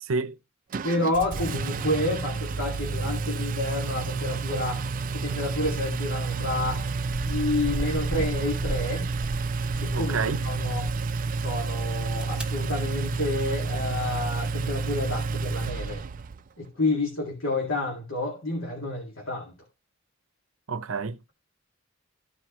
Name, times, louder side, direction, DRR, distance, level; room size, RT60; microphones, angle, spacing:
voice 1, 0.0-0.4 9.9-10.4 20.7-21.2, right 4 dB, 90° right, 0.7 m, -29 dB
Engine, 0.7-16.4, right 4 dB, 40° right, 0.4 m, -30 dB
voice 2, 0.8-4.9 5.1-6.9 7.2-9.1 9.8-10.9 11.4-16.0 16.6-19.5, left 2 dB, 90° left, 2.2 m, -29 dB
sound 1, 7.2-10.1 10.4-11.0 11.9-12.5, right 1 dB, 5° right, 1.0 m, -37 dB
14.0 x 4.7 x 3.1 m
head